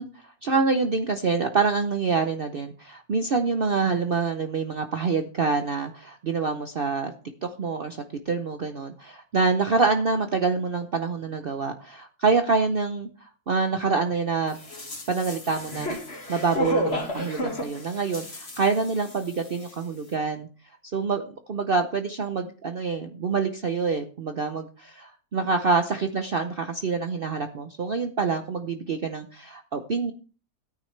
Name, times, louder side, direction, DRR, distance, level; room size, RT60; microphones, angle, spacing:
voice 1, 0.0-7.1 7.4-14.6 15.1-16.0 16.3-20.5 20.9-30.1, right 4 dB, 50° right, 6 dB, 0.8 m, -26 dB
sound 1, 14.5-19.4 19.6-19.7, left 1 dB, 40° left, 2.3 m, -32 dB
14.0 x 9.6 x 3.3 m, 0.38 s
omnidirectional pair, 1.6 m